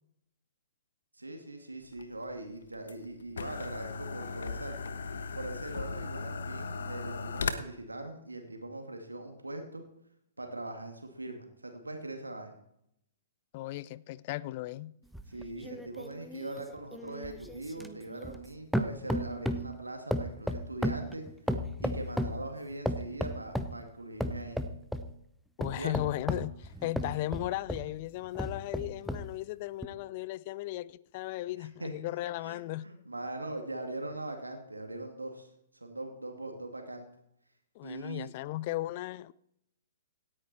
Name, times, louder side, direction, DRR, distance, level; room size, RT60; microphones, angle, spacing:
voice 1, 1.2-4.8 5.3-9.8 10.4-12.6 15.3-21.3 21.8-24.6 25.8-25.9 31.6-31.9 32.4-35.5 35.7-37.1 37.8-38.3, right 2 dB, 85° right, 2.4 m, -41 dB
sound 1, 1.9-7.5, left 4 dB, 65° left, 1.2 m, -37 dB
voice 2, 13.5-14.9 25.6-32.9 37.8-39.3, left 16 dB, 40° left, 0.5 m, -36 dB
sound 2, 15.1-18.5 18.7-19.7 20.1-22.4 22.9-23.8 24.2-25.1 25.6-27.9 28.4-29.3 29.8-29.9, equal, ahead, 0.9 m, -34 dB
17.5 x 9.7 x 4.5 m
figure-of-eight pair, 115°, 0 cm